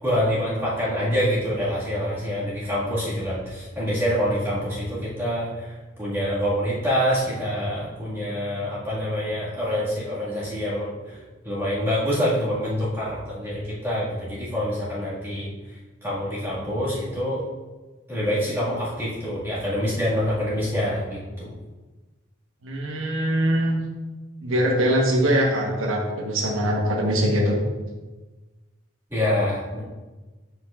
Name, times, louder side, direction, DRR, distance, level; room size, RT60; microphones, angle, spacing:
voice 1, 0.0-17.4 18.1-21.5 29.1-29.8, equal, 10° right, -10 dB, 1.9 m, -26 dB
voice 2, 22.6-23.8 24.4-27.6, equal, 80° right, -1 dB, 1.2 m, -22 dB
9.1 x 5.3 x 2.5 m, 1.2 s
head